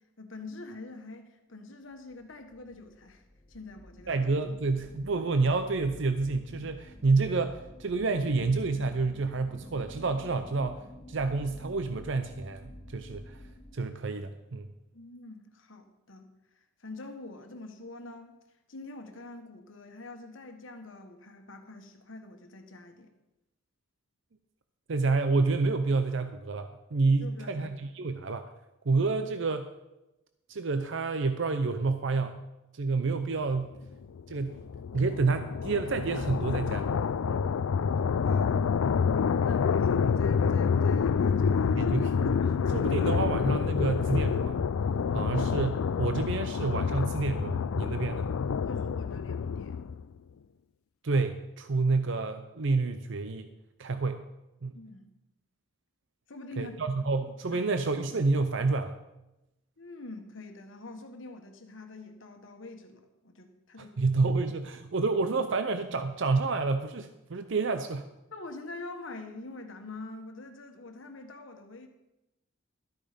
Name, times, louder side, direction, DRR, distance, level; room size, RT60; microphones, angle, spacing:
voice 1, 0.2-4.2 4.5-4.6 14.9-18.4 18.7-23.1 27.2-27.7 38.0-38.6 39.4-41.9 48.5-49.8 54.7-55.1 56.3-57.1 57.5-57.7 59.8-64.1 68.3-71.9, left 2 dB, 65° left, 5 dB, 1.5 m, -45 dB
sound 1, 2.1-13.8, left 1 dB, 25° left, 2.2 m, -49 dB
voice 2, 4.1-10.8 11.1-13.4 13.7-14.7 24.9-28.4 28.9-29.7 30.5-32.4 32.7-33.8 34.3-34.6 34.9-36.9 37.3-37.5 41.7-44.6 45.1-48.3 51.0-53.5 53.8-54.3 54.6-54.7 56.6-59.0 63.8-68.0, right 3 dB, 60° right, 9 dB, 0.6 m, -29 dB
sound 2, 33.9-50.1, left 6 dB, 85° left, 0.4 m, -28 dB
13.0 x 8.9 x 5.1 m, 0.95 s
head